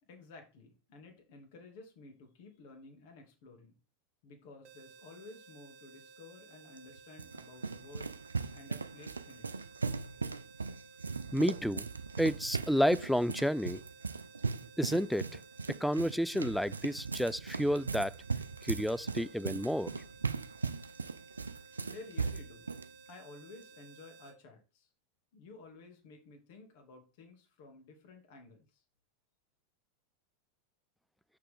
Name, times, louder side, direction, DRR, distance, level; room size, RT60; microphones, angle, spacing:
voice 1, 0.0-3.8 4.2-8.2 8.5-9.5 21.8-22.7 23.1-24.9 25.3-28.8, left 3 dB, 60° left, 2.6 m, -53 dB
sound 1, 4.6-24.4, right 5 dB, 50° right, 1.1 m, -57 dB
Running on concrete indoors, 6.8-22.9, right 4 dB, 90° right, 0.5 m, -38 dB
voice 2, 11.3-11.9 12.2-13.8 14.8-15.3 15.7-18.1 18.6-20.0, equal, ahead, 0.3 m, -30 dB
6.6 x 6.5 x 3.7 m
hypercardioid pair, 90°, 0 cm